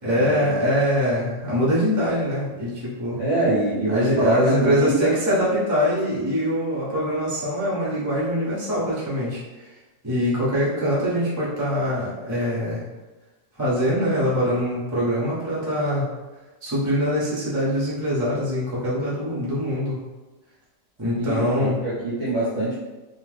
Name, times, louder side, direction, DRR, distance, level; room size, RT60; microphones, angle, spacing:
voice 1, 0.0-3.2 3.9-9.7 10.0-12.8 13.6-16.1 16.6-20.0 21.0-21.8, equal, 30° right, -7 dB, 0.3 m, -23 dB
voice 2, 3.1-5.1 21.2-22.8, right 1 dB, 60° right, -8 dB, 0.7 m, -25 dB
2.9 x 2.2 x 3.2 m, 1.1 s
omnidirectional pair, 2.0 m